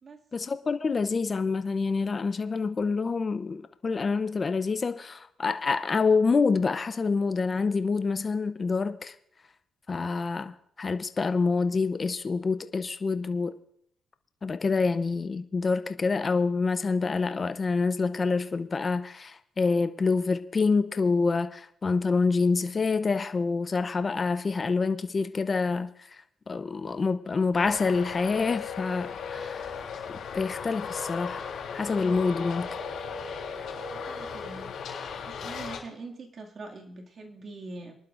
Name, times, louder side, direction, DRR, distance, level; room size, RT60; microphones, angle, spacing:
voice 1, 0.3-9.1 9.9-13.5 14.4-26.1 26.5-29.8 30.3-31.5 31.7-32.7, left 4 dB, 35° left, 10 dB, 0.6 m, -27 dB
Traffic noise roadway noise, 27.5-35.8, left 6 dB, 75° left, 3.4 m, -36 dB
voice 2, 33.9-34.7 35.3-37.9, right 3 dB, 45° right, 1 dB, 2.2 m, -43 dB
24.0 x 11.5 x 2.5 m, 0.70 s
cardioid pair, 90°, 0 cm